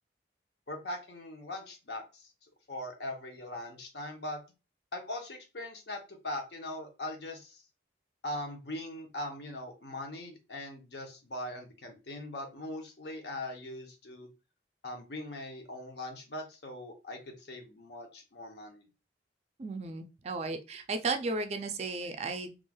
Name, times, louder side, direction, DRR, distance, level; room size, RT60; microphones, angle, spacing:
voice 1, 0.7-2.3 2.7-4.4 4.9-7.6 8.2-14.3 14.8-18.8, left 1 dB, 65° left, 3 dB, 0.7 m, -41 dB
voice 2, 19.6-22.6, right 3 dB, 35° right, 6 dB, 0.3 m, -34 dB
3.0 x 2.4 x 2.2 m, 0.29 s
head